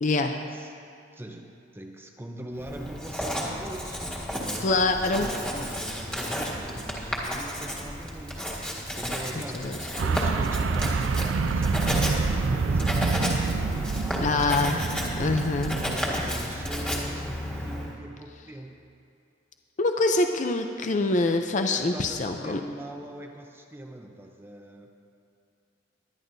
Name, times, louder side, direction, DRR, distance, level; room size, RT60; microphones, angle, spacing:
voice 1, 0.0-0.4 4.6-5.3 9.5-9.8 14.2-14.8 15.1-15.8 19.8-22.6, left 2 dB, 40° left, 5 dB, 0.6 m, -25 dB
voice 2, 1.1-4.7 5.0-13.5 14.1-14.4 15.2-18.8 21.8-24.9, right 1 dB, 10° right, 2 dB, 0.7 m, -41 dB
Writing, 2.6-18.0, equal, 5° left, 1.7 m, -32 dB
sound 1, 10.0-16.0, right 4 dB, 75° right, 0.5 m, -27 dB
21.0 x 10.5 x 2.7 m, 2.4 s
head